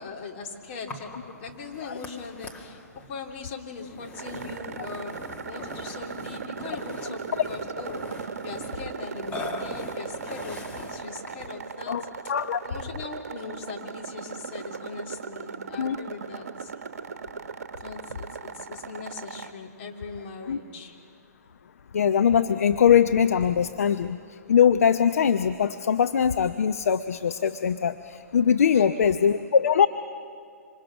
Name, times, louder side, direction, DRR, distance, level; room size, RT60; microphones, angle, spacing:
voice 1, 0.0-2.8 3.1-8.0 8.4-12.0 12.7-16.7 17.8-21.0 28.5-28.9, left 4 dB, 40° left, 0 dB, 3.3 m, -40 dB
Burping eructation, 0.9-11.6, left 2 dB, 15° left, 2.1 m, -42 dB
sound 1, 4.1-19.5, right 5 dB, 60° right, 1.3 m, -38 dB
voice 2, 12.3-12.6 15.8-16.0 20.5-20.6 21.9-24.2 24.5-29.9, left 7 dB, 60° left, 10 dB, 0.7 m, -21 dB
27.0 x 26.0 x 6.1 m, 2.3 s
figure-of-eight pair, 125°, 9 cm